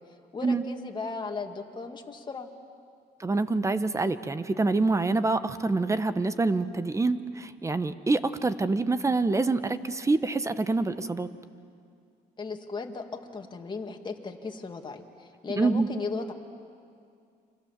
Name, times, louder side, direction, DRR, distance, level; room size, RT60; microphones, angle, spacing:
voice 1, 0.3-2.5 12.4-16.3, left 4 dB, 25° left, 3 dB, 2.3 m, -36 dB
voice 2, 3.2-11.3 15.5-15.9, right 3 dB, 20° right, 12 dB, 1.1 m, -26 dB
29.5 x 25.5 x 7.5 m, 2.3 s
cardioid pair, 110°, 17 cm